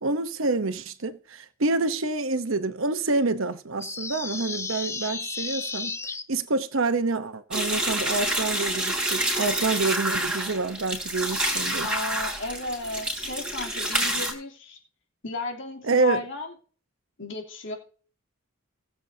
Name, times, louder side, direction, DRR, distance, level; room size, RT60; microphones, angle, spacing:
voice 1, 0.0-6.0 6.3-11.9 15.8-16.2, right 3 dB, 70° right, 1.0 m, -27 dB
sound 1, 3.8-6.2, left 4 dB, 15° left, 0.6 m, -33 dB
sound 2, 7.5-14.3, right 1 dB, 5° right, 3.6 m, -28 dB
voice 2, 11.8-14.8 15.2-16.5 17.2-17.8, left 2 dB, 65° left, 3.2 m, -33 dB
19.5 x 7.9 x 2.8 m
head